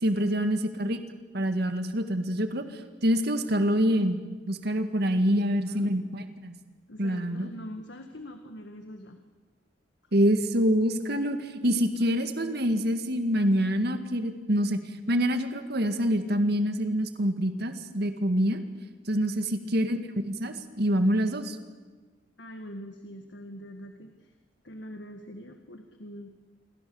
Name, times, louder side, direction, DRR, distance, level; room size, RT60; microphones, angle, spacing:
voice 1, 0.0-1.0 1.3-4.2 4.5-6.5 7.0-7.5 10.1-18.6 19.1-19.4 19.7-21.6, equal, 55° right, 8 dB, 2.0 m, -26 dB
voice 2, 5.4-5.9 6.9-9.2 10.0-10.1 11.6-11.9 19.1-19.5 22.4-24.3 24.6-26.3, equal, 60° left, 6 dB, 1.7 m, -43 dB
28.0 x 23.0 x 7.1 m, 1.4 s
head